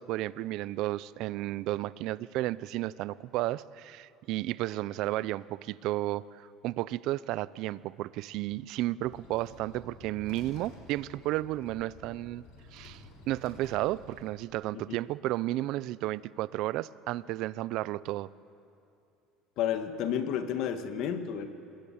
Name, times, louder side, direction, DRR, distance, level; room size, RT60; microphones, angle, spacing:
voice 1, 0.0-12.4 12.7-18.3, right 16 dB, 60° right, 18 dB, 0.6 m, -33 dB
sound 1, 9.0-14.3, left 2 dB, 75° left, 5.9 m, -51 dB
voice 2, 19.6-21.5, left 9 dB, 55° left, 8 dB, 1.8 m, -31 dB
27.5 x 21.0 x 8.8 m, 2.7 s
cardioid pair, 145°, 0 cm